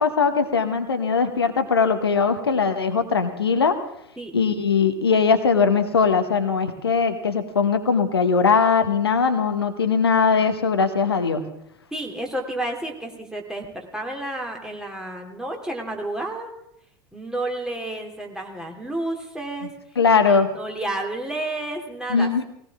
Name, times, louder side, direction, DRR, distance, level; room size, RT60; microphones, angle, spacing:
voice 1, 0.0-3.8 4.3-11.4 20.0-20.5 22.1-22.4, left 5 dB, 80° left, 8 dB, 1.1 m, -20 dB
voice 2, 11.9-16.5 17.1-19.7 20.2-22.4, right 1 dB, 5° right, 1 dB, 2.8 m, -31 dB
19.5 x 17.5 x 3.6 m, 0.77 s
figure-of-eight pair, 80°, 13 cm